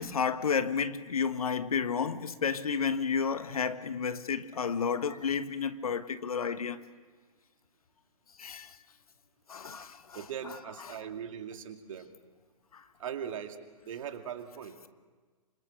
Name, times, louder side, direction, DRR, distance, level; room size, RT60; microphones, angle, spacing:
voice 1, 0.0-6.8 8.4-8.7 9.5-10.0 12.7-12.8, left 6 dB, 75° left, 1.5 m, -31 dB
voice 2, 10.1-12.1 13.0-13.6 13.8-14.7, right 8 dB, 60° right, 2.5 m, -40 dB
27.0 x 26.0 x 6.6 m
figure-of-eight pair, 115°, 19 cm